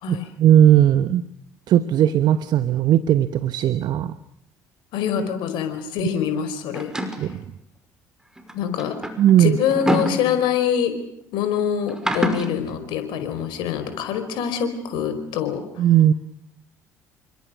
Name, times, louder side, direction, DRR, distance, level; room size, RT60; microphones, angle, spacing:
voice 1, 0.1-1.2 1.7-4.1 7.2-7.4 9.2-9.6 15.8-16.1, right 11 dB, 55° right, 13 dB, 1.1 m, -17 dB
voice 2, 4.9-6.9 7.2-7.3 8.5-9.0 9.4-10.9 11.3-15.8, left 8 dB, 65° left, 9 dB, 4.9 m, -25 dB
sound 1, 6.7-7.3 8.4-10.8 11.9-12.5, equal, 10° right, 5.9 m, -26 dB
29.0 x 26.0 x 6.4 m, 0.76 s
hypercardioid pair, 55°, 8 cm